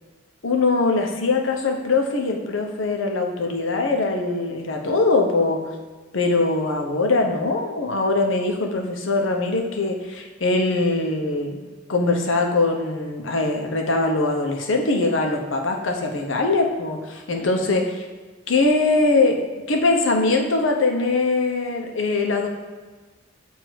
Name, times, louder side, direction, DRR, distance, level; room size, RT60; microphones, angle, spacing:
voice 1, 0.4-5.6 6.1-11.6 11.9-18.1 18.5-19.4 19.7-22.5, left 3 dB, 80° left, 3 dB, 0.8 m, -22 dB
7.9 x 2.7 x 4.6 m, 1.4 s
head